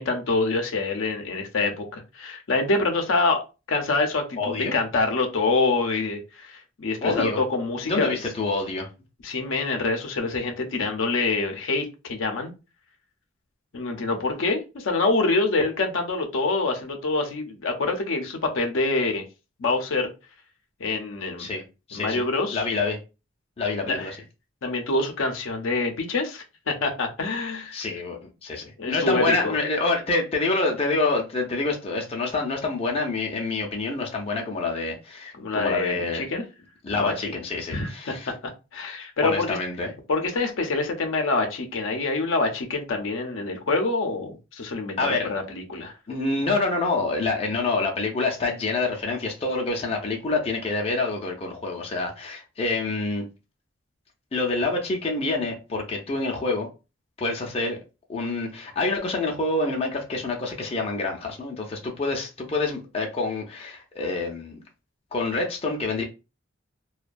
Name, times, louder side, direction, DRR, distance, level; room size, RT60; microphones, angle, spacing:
voice 1, 0.0-3.4 3.7-8.2 9.2-12.5 13.7-19.2 19.6-20.1 20.8-21.5 21.9-22.6 23.9-24.1 24.6-27.8 28.8-29.5 35.4-36.4 36.9-37.1 37.7-39.6 40.1-45.9, left 3 dB, 80° left, 0.5 m, -26 dB
voice 2, 4.4-4.7 7.0-7.4 7.8-8.9 21.4-21.6 21.9-22.2 22.5-23.0 23.6-24.2 27.7-36.3 36.8-38.3 39.2-39.9 45.0-45.3 46.1-53.3 54.3-56.7 57.2-57.8 58.1-64.6 65.1-66.0, left 3 dB, 30° left, 0.5 m, -27 dB
2.3 x 2.2 x 2.4 m
head